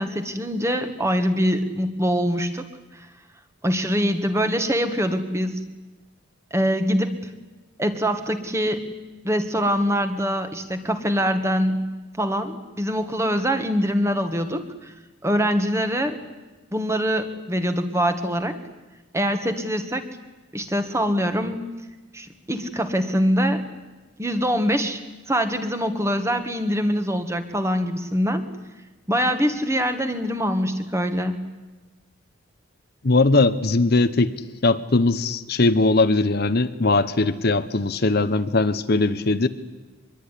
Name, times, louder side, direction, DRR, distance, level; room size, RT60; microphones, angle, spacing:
voice 1, 0.0-2.6 2.9-3.1 3.6-5.6 6.5-7.1 7.8-8.8 9.2-11.8 12.2-14.9 15.2-16.2 16.7-18.6 19.1-20.0 20.5-21.6 22.1-23.6 24.2-25.0 25.3-28.4 29.1-31.4, equal, 15° right, 8 dB, 1.7 m, -24 dB
voice 2, 33.0-34.3 34.6-39.5, left 3 dB, 50° left, 11 dB, 0.9 m, -20 dB
24.5 x 22.0 x 9.9 m, 1.2 s
head